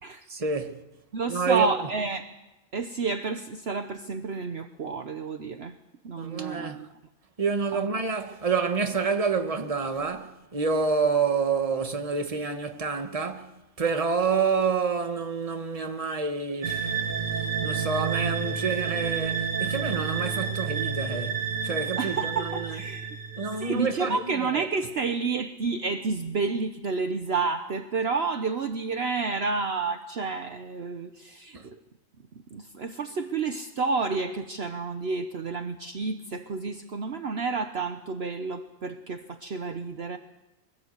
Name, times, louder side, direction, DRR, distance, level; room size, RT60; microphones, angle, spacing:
voice 1, 0.3-0.8 1.3-1.7 6.2-6.8 7.4-17.0 17.6-22.8 23.4-24.7 31.5-31.7, right 5 dB, 25° right, 1.4 m, -28 dB
voice 2, 1.1-2.3 2.7-5.8 6.0-6.9 7.7-7.9 22.0-23.1 23.6-31.8 32.5-40.2, right 4 dB, 55° right, 1.1 m, -30 dB
sound 1, 16.6-24.1, right 6 dB, 75° right, 2.2 m, -30 dB
23.5 x 17.0 x 8.1 m
omnidirectional pair, 1.4 m